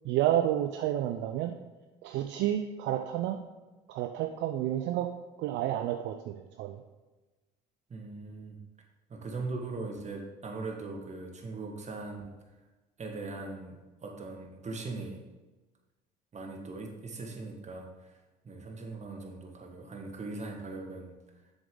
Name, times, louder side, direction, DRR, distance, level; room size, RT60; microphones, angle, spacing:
voice 1, 0.0-1.5 2.0-3.4 3.9-5.1 5.4-6.8, right 12 dB, 65° right, 6 dB, 0.6 m, -30 dB
voice 2, 7.9-8.6 9.1-12.3 13.0-13.8 14.0-15.2 16.3-18.1 18.4-21.1, right 3 dB, 35° right, 3 dB, 1.7 m, -40 dB
7.1 x 7.1 x 3.9 m, 1.2 s
hypercardioid pair, 65°, 20 cm